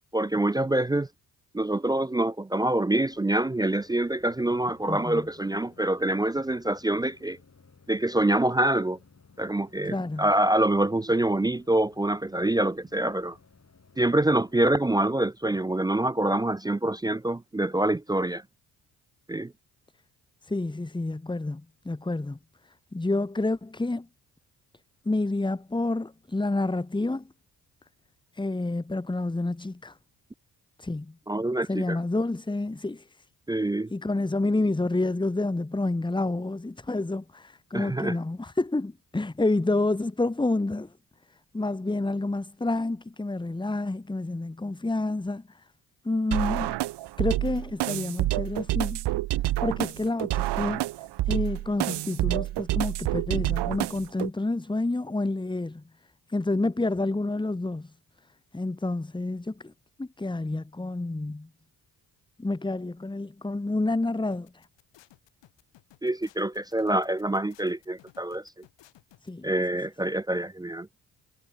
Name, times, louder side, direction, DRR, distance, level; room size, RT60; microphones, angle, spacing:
voice 1, 0.1-1.1 1.5-7.4 7.9-9.0 9.4-13.4 14.0-18.4 19.3-19.5 31.3-32.0 33.5-33.9 37.7-38.2 66.0-68.4 69.4-70.9, right 1 dB, 10° right, 0.4 m, -25 dB
sound 1, 2.6-14.7, left 4 dB, 35° left, 4.8 m, -58 dB
voice 2, 4.9-5.3 9.9-10.3 20.4-22.4 22.6-24.1 25.0-27.3 28.3-30.0 30.8-31.1 31.7-33.2 33.9-40.9 41.5-45.6 46.0-46.7 47.2-49.0 49.6-50.8 51.3-55.8 56.3-57.9 58.5-59.7 60.0-61.5 62.4-64.7 69.2-69.5, left 2 dB, 10° left, 1.1 m, -29 dB
sound 2, 46.3-54.3, right 16 dB, 70° right, 0.8 m, -28 dB
sound 3, 64.3-69.3, left 14 dB, 80° left, 3.0 m, -57 dB
supercardioid pair, 50°, 43 cm